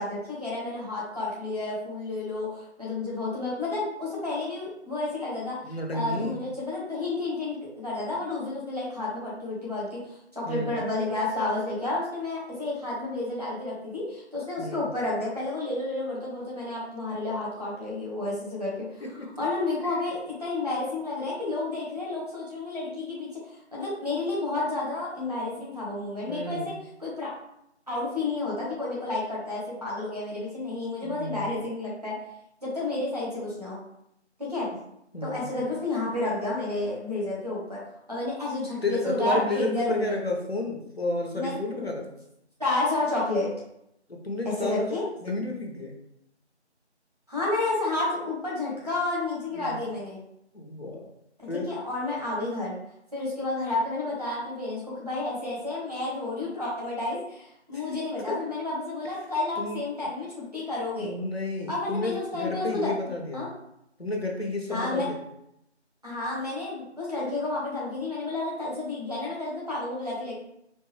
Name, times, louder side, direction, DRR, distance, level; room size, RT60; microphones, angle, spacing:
voice 1, 0.0-5.6 5.9-10.0 10.3-19.0 19.4-23.3 23.7-26.7 27.0-27.3 27.9-32.1 32.6-33.8 34.4-34.7 35.2-37.8 38.1-40.2 41.3-41.8 42.6-43.5 44.4-45.0 47.3-50.2 51.4-52.8 53.1-61.1 61.7-62.9 63.3-63.5 64.7-65.1 66.0-70.3, left 2 dB, 35° right, -7 dB, 1.3 m, -31 dB
voice 2, 5.6-6.4 10.4-10.8 14.6-14.9 19.0-19.3 19.8-20.0 26.3-26.7 31.0-31.5 35.1-35.6 38.8-42.1 44.1-44.9 45.2-45.9 49.5-49.9 50.5-51.1 51.5-51.7 57.7-57.9 58.3-58.4 59.6-59.8 60.9-63.5 64.0-65.2, left 2 dB, 60° left, 0 dB, 1.0 m, -31 dB
4.4 x 2.5 x 3.1 m, 0.78 s
figure-of-eight pair, 180°, 34 cm